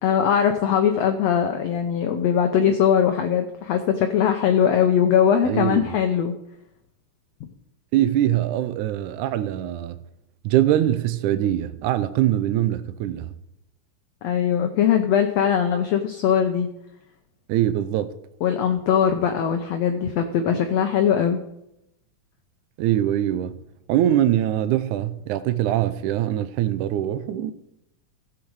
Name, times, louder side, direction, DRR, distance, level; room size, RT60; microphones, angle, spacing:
voice 1, 0.0-6.4 7.4-7.5 14.2-16.7 18.4-21.4, left 8 dB, 80° left, 1.5 m, -21 dB
voice 2, 5.5-5.9 7.9-10.0 10.4-13.3 17.5-18.1 22.8-23.6 23.9-27.5, right 12 dB, 80° right, 1.9 m, -23 dB
15.5 x 7.4 x 4.8 m
omnidirectional pair, 4.0 m